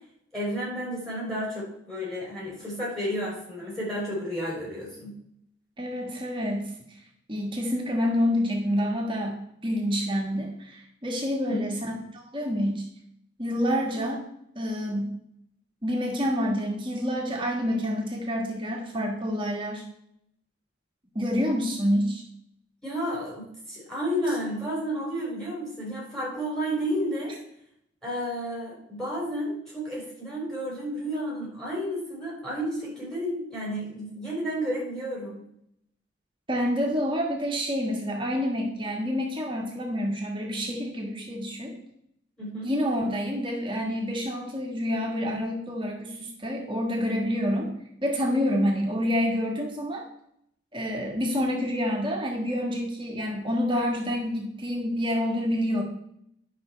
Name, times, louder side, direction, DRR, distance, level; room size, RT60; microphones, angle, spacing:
voice 1, 0.3-5.1 11.5-11.6 22.8-27.3 28.0-35.4 42.4-42.7 48.5-48.6, equal, 5° left, -5 dB, 4.3 m, -31 dB
voice 2, 5.8-6.7 7.3-12.9 13.4-14.2 14.5-15.1 15.8-19.8 21.1-22.2 36.5-41.7 42.6-47.7 48.0-50.0 50.7-55.8, equal, 25° right, 0 dB, 1.4 m, -28 dB
10.5 x 5.7 x 4.4 m, 0.74 s
head